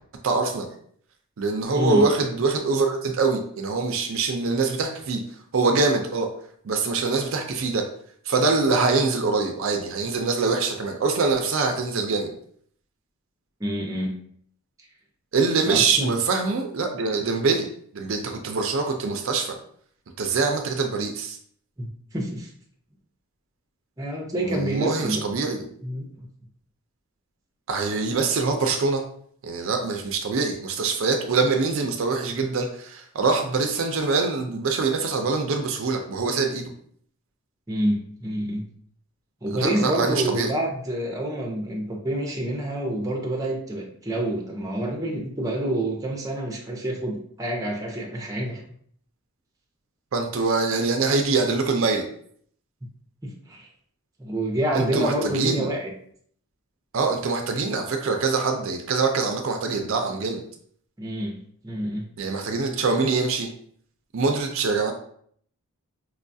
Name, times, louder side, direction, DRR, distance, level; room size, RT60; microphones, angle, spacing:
voice 1, 0.2-0.7 1.4-5.2 5.5-6.3 6.6-7.8 8.3-12.3 15.3-17.7 17.9-19.6 20.2-21.4 24.4-25.6 27.7-29.0 29.4-36.7 39.5-40.5 50.1-52.0 54.7-55.7 56.9-60.4 62.2-63.5 64.1-64.9, right 4 dB, 60° right, 4 dB, 0.4 m, -24 dB
voice 2, 1.7-2.0 13.6-14.1 15.6-16.2 21.8-22.5 24.0-25.2 25.8-26.3 37.7-38.6 39.4-48.6 53.2-53.7 54.2-55.9 61.0-62.0, right 1 dB, 15° right, -1 dB, 0.6 m, -28 dB
4.6 x 2.3 x 2.6 m, 0.62 s
head